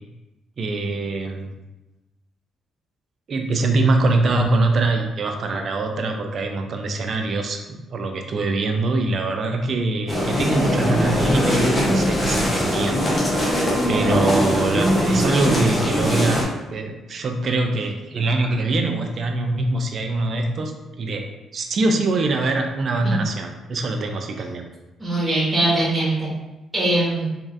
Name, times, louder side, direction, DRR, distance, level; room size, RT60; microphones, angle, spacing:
voice 1, 0.6-1.5 3.3-13.2 13.9-21.3 21.5-24.6, right 2 dB, 55° right, 4 dB, 0.4 m, -23 dB
sound 1, 10.1-16.4, equal, 30° left, 0.9 m, -21 dB
voice 2, 25.0-26.3 26.7-27.3, right 1 dB, 20° right, -6 dB, 1.4 m, -22 dB
3.1 x 2.6 x 2.6 m, 1.0 s
cardioid pair, 85°, 0 cm